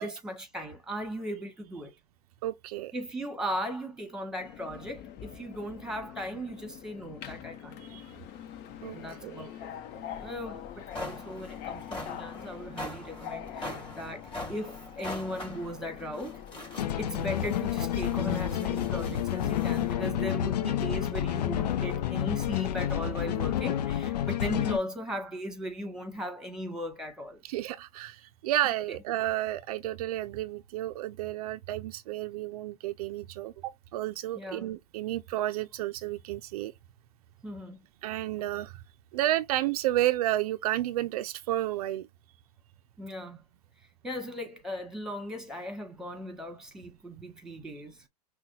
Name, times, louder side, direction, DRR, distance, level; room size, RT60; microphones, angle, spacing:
voice 1, 0.0-1.9 2.9-8.0 8.9-9.7 10.2-16.4 17.0-27.4 28.9-29.0 34.3-34.7 37.4-37.8 43.0-43.4 44.0-48.1, equal, 5° right, 1.7 m, -38 dB
voice 2, 2.4-2.9 7.9-8.0 8.8-9.0 9.2-9.4 27.4-36.7 38.0-38.8 39.1-42.1, right 14 dB, 65° right, 0.5 m, -31 dB
Subway metro underground, 4.4-23.1, left 10 dB, 50° left, 1.0 m, -45 dB
sound 1, 10.2-10.3 10.7-19.9, left 1 dB, 25° left, 3.4 m, -43 dB
sound 2, 16.8-24.8, left 10 dB, 80° left, 0.6 m, -29 dB
5.9 x 2.3 x 2.7 m
hypercardioid pair, 105°, 21 cm